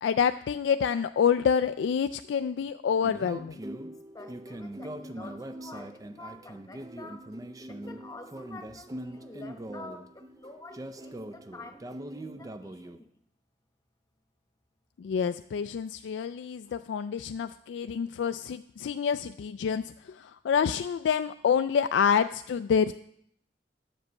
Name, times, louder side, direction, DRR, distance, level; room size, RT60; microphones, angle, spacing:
voice 1, 0.0-3.6 15.0-22.9, left 7 dB, 85° left, 10 dB, 0.3 m, -27 dB
sound 1, 3.0-13.0, right 1 dB, 20° right, 0.4 m, -41 dB
voice 2, 4.1-7.3 7.7-13.1, left 2 dB, 20° left, 5 dB, 1.0 m, -48 dB
10.5 x 5.2 x 7.2 m, 0.72 s
head